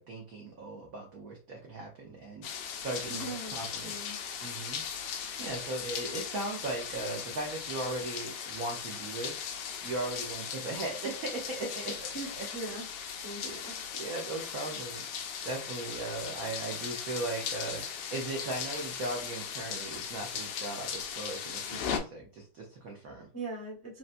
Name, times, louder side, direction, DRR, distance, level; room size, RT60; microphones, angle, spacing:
voice 1, 0.0-4.1 4.4-4.8 5.4-9.4 9.8-12.1 12.4-12.5 13.1-13.5 13.9-23.3, right 2 dB, 70° right, -1 dB, 0.8 m, -38 dB
sound 1, 2.4-22.0, left 7 dB, 75° left, 1.2 m, -38 dB
voice 2, 3.1-3.5 3.8-4.2 12.1-12.8 13.2-13.7 23.3-24.0, right 2 dB, 15° left, -4 dB, 0.5 m, -40 dB
3.9 x 2.2 x 2.5 m, 0.35 s
omnidirectional pair, 2.4 m